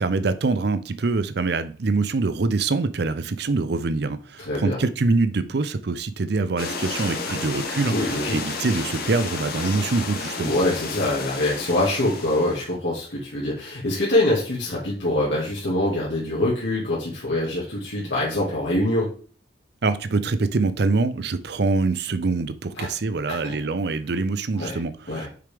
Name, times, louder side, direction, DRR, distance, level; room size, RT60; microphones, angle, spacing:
voice 1, 0.0-10.5 19.8-25.3, right 3 dB, 55° right, 0.5 m, -24 dB
voice 2, 4.4-4.8 7.9-8.4 10.4-19.1 22.8-22.9 23.3-23.5 24.6-24.8 25.1-25.3, left 1 dB, 70° left, 1.8 m, -24 dB
sound 1, 6.6-12.7, left 4 dB, 50° left, 1.0 m, -32 dB
6.7 x 5.1 x 3.4 m
head